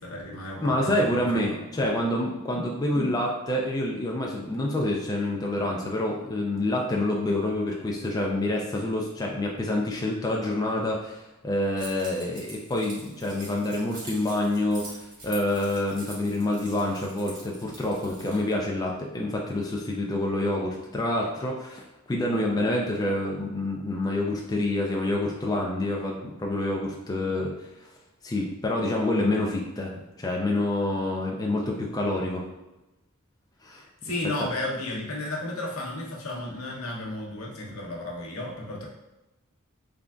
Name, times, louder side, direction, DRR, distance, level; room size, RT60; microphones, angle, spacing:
voice 1, 0.0-2.0 2.5-2.7 2.9-3.1 34.0-38.9, left 1 dB, 80° left, -1 dB, 0.9 m, -34 dB
voice 2, 0.6-27.5 27.8-27.9 28.2-32.4 33.6-33.8 34.4-34.5, left 1 dB, 15° left, -1 dB, 0.4 m, -27 dB
Keys jangling, 11.8-18.5, right 2 dB, 40° right, 1.3 m, -44 dB
3.8 x 3.3 x 2.4 m, 1.0 s
head